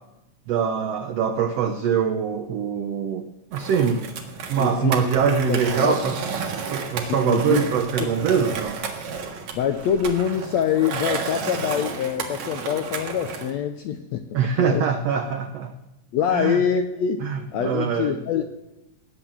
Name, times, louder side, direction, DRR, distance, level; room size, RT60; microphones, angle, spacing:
voice 1, 0.5-4.1 4.5-6.2 6.7-8.8 14.3-15.7 16.3-16.6 17.2-18.2, right 7 dB, 80° right, 7 dB, 1.4 m, -23 dB
Skateboard, 3.5-13.5, right 5 dB, 60° right, 2.9 m, -32 dB
voice 2, 4.6-5.9 7.0-7.7 8.0-8.1 9.5-14.3 14.6-14.8 16.1-18.5, left 8 dB, 75° left, 7 dB, 1.6 m, -25 dB
18.0 x 10.0 x 7.3 m, 0.97 s
omnidirectional pair, 3.9 m